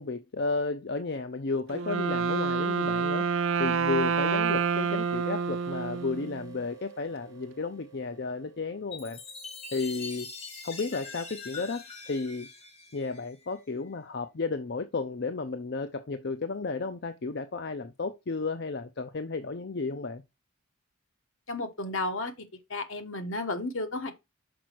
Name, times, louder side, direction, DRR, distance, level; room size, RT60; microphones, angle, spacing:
voice 1, 0.0-3.3 3.6-9.2 9.7-10.3 10.6-12.5 12.9-20.2, left 3 dB, 50° left, 0.6 m, -33 dB
Wind instrument woodwind instrument, 1.7-6.6, right 5 dB, 65° right, 0.5 m, -28 dB
sound 1, 4.5-9.9, right 11 dB, 15° right, 2.2 m, -49 dB
Chime, 8.9-13.6, left 4 dB, 30° left, 1.8 m, -43 dB
voice 2, 21.5-22.3 22.7-24.1, left 2 dB, 65° left, 1.3 m, -32 dB
6.1 x 5.1 x 4.6 m
head